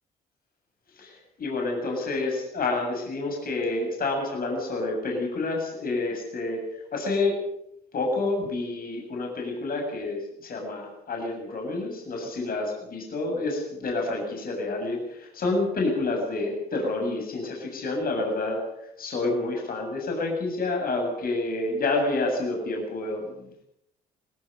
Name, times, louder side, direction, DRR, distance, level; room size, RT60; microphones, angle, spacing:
voice 1, 1.0-7.4 7.9-18.6 19.0-23.6, left 2 dB, 50° left, 1 dB, 7.6 m, -29 dB
20.5 x 19.5 x 6.9 m, 0.76 s
hypercardioid pair, 50°, 19 cm